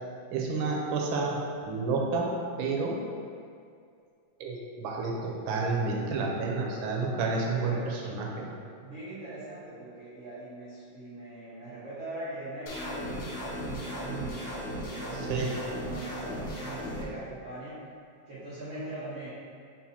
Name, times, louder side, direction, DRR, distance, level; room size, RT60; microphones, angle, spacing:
voice 1, 0.3-1.4 1.6-2.3 2.6-3.0 4.4-8.5 15.3-15.5, right 4 dB, 90° right, -1 dB, 1.5 m, -30 dB
voice 2, 7.5-8.0 8.8-17.8 18.3-19.3, right 2 dB, 45° right, -13 dB, 1.3 m, -41 dB
sound 1, 12.7-17.0, equal, 60° left, 1.1 m, -36 dB
5.6 x 2.3 x 4.1 m, 2.3 s
omnidirectional pair, 2.2 m